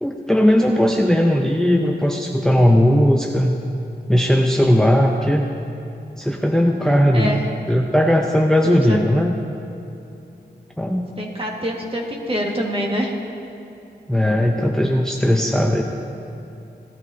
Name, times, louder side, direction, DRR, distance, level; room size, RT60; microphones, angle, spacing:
voice 1, 0.0-3.5 4.1-5.4 6.2-7.4 7.7-9.3 10.8-11.1 14.1-15.8, equal, 5° left, 1 dB, 0.6 m, -17 dB
voice 2, 7.1-7.5 8.6-9.0 11.2-13.2, equal, 30° right, -1 dB, 1.7 m, -25 dB
17.0 x 12.5 x 2.7 m, 2.8 s
wide cardioid pair, 90°, 18 cm